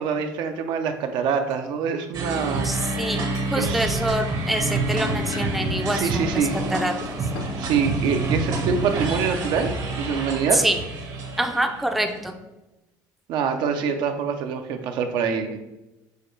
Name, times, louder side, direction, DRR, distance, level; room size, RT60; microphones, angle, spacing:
voice 1, 0.0-2.7 3.6-4.0 5.9-6.6 7.6-10.6 13.3-15.6, right 6 dB, 65° right, 6 dB, 0.5 m, -25 dB
sound 1, 1.3-1.6 3.1-3.6 4.4-4.5 5.3-5.6 5.9-6.0 7.3-7.7, left 4 dB, 75° left, 0.6 m, -41 dB
sound 2, 2.1-12.2, right 2 dB, 50° right, 0.8 m, -28 dB
voice 2, 2.6-7.0 10.5-10.8 11.4-12.3, right 1 dB, ahead, 4 dB, 0.4 m, -26 dB
6.3 x 2.3 x 3.1 m, 0.99 s
supercardioid pair, 95°, 8 cm